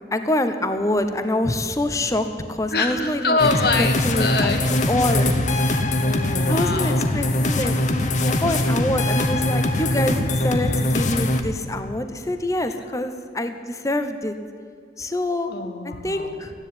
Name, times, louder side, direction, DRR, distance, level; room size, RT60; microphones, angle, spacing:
voice 1, 0.1-3.4 3.8-4.5 4.9-5.3 6.5-7.8 8.3-14.4 15.0-15.5 16.0-16.5, left 1 dB, 20° left, 8 dB, 0.9 m, -25 dB
voice 2, 2.7-4.6 6.0-7.1 15.5-16.3, left 3 dB, 60° left, 6 dB, 1.7 m, -24 dB
sound 1, 3.4-11.4, left 1 dB, 45° left, 1.2 m, -22 dB
14.0 x 10.5 x 9.7 m, 2.2 s
head